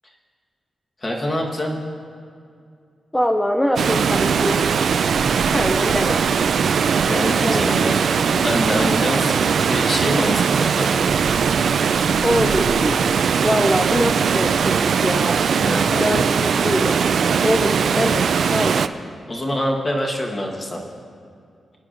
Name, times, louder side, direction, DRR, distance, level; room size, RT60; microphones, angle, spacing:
voice 1, 1.0-1.8 7.1-8.0 8.3-11.1 15.6-16.3 19.3-20.8, left 1 dB, 25° left, -1 dB, 1.3 m, -25 dB
voice 2, 3.1-4.7 5.5-6.2 7.4-7.9 12.2-15.4 16.0-17.0 17.4-18.8, equal, 5° left, 4 dB, 0.4 m, -23 dB
Water, 3.8-18.9, right 6 dB, 65° right, 0.3 m, -20 dB
22.5 x 9.9 x 2.5 m, 2.3 s
wide cardioid pair, 165°, 0 cm